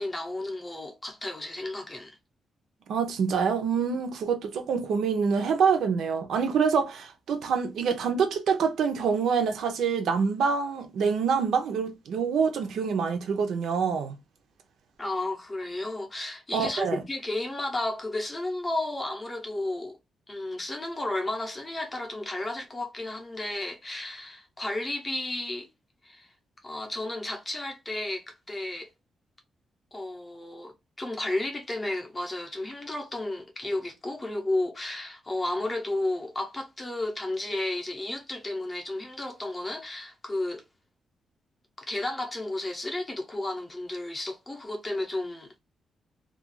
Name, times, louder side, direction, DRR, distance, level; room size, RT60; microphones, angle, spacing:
voice 1, 0.0-2.2 15.0-20.0 20.3-25.7 26.0-26.3 26.6-28.9 29.9-40.6 41.8-45.5, left 2 dB, 15° left, 0.6 m, -33 dB
voice 2, 2.9-14.1 16.5-17.0, right 6 dB, 75° right, 0.5 m, -26 dB
2.3 x 2.2 x 2.9 m
wide cardioid pair, 175°, 0 cm